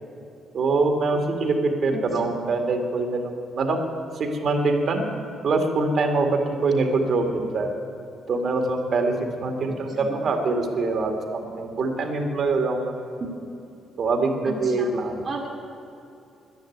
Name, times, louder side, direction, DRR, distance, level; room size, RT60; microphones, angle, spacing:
voice 1, 0.5-3.8 4.2-5.0 5.4-7.7 8.3-9.1 9.4-12.9 14.0-15.3, right 3 dB, 60° right, 4 dB, 2.0 m, -24 dB
voice 2, 14.4-14.9 15.2-15.5, right 3 dB, 40° right, 0 dB, 1.8 m, -33 dB
10.5 x 10.5 x 9.4 m, 2.7 s
cardioid pair, 90°, 0 cm